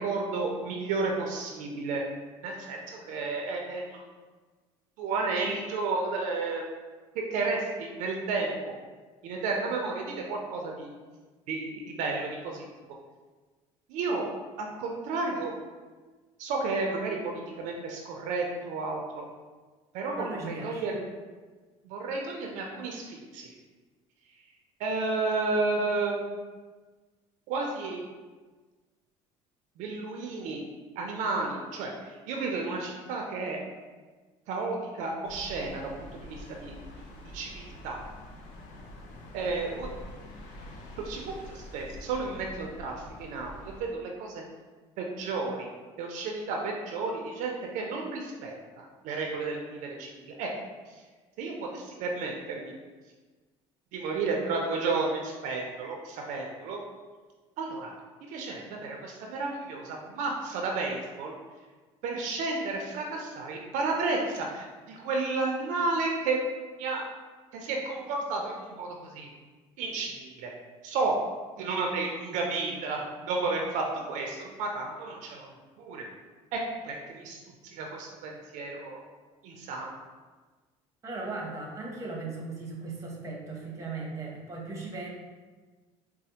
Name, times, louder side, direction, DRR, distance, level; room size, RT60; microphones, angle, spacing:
voice 1, 0.0-2.0 2.4-4.0 5.0-6.6 7.1-8.7 9.2-10.9 11.5-12.6 13.9-14.3 14.6-15.5 16.4-19.2 19.9-21.1 21.8-23.5 24.8-26.4 27.5-28.0 29.8-30.6 31.0-33.6 34.5-35.9 36.2-36.8 37.3-38.0 39.3-39.9 41.0-44.4 45.0-45.7 46.0-50.5 50.9-51.0 51.4-52.7 53.9-56.8 57.6-57.9 58.2-61.4 62.0-66.4 66.8-67.1 67.5-69.3 69.8-70.5 70.8-71.2 71.6-75.5 75.8-76.0 76.5-77.4 77.7-79.0 79.4-79.9, right 3 dB, 70° right, 1 dB, 0.5 m, -32 dB
voice 2, 20.1-20.8 81.0-85.1, right 3 dB, 25° right, -2 dB, 0.8 m, -37 dB
sound 1, 35.2-43.8, left 1 dB, 70° left, 0.6 m, -46 dB
4.0 x 2.0 x 2.8 m, 1.3 s
cardioid pair, 100°, 13 cm